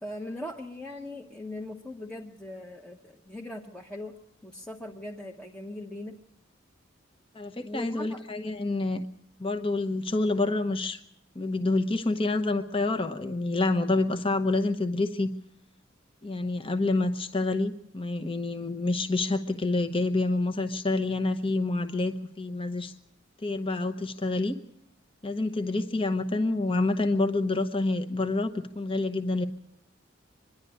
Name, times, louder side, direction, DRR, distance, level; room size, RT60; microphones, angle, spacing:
voice 1, 0.0-4.1 4.4-6.2 7.6-8.2, left 1 dB, 5° left, -1 dB, 0.9 m, -40 dB
voice 2, 7.3-9.0 9.4-11.0 11.3-15.3 16.2-22.9 23.4-24.6 25.2-29.5, left 2 dB, 25° left, 7 dB, 0.9 m, -27 dB
24.5 x 11.0 x 9.7 m, 0.76 s
head